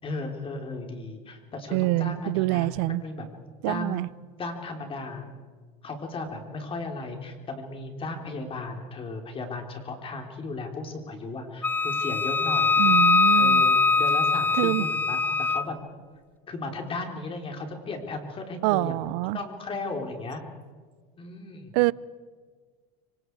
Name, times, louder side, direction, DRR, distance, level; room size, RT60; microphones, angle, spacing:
voice 1, 0.0-3.3 3.7-4.1 4.4-5.3 5.8-12.8 13.4-15.8 16.5-18.9 19.3-20.4 21.2-21.7, left 3 dB, 30° left, 3.8 m, -35 dB
voice 2, 1.7-3.0 3.6-4.1 12.8-13.6 14.6-14.9 18.6-19.4 21.7-21.9, right 22 dB, 70° right, 0.6 m, -25 dB
Wind instrument woodwind instrument, 11.6-15.7, left 4 dB, 10° left, 0.7 m, -22 dB
25.5 x 25.0 x 4.8 m
supercardioid pair, 130°, 20 cm